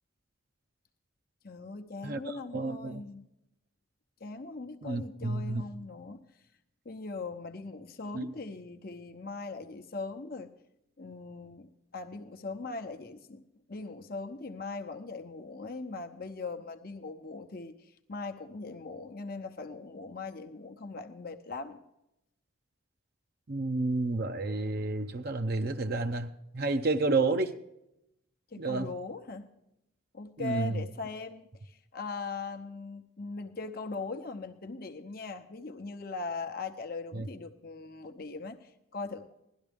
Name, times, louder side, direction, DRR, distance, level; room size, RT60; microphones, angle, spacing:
voice 1, 1.4-3.2 4.2-6.2 6.8-10.5 11.0-13.4 13.7-21.8 28.5-29.5 30.1-39.3, left 3 dB, 45° left, 6 dB, 0.8 m, -40 dB
voice 2, 2.0-3.0 4.8-5.6 8.1-8.3 23.5-27.5 28.6-28.9 30.4-30.8 37.1-37.3, right 3 dB, 50° right, 7 dB, 0.6 m, -30 dB
16.5 x 12.0 x 3.5 m, 0.84 s
head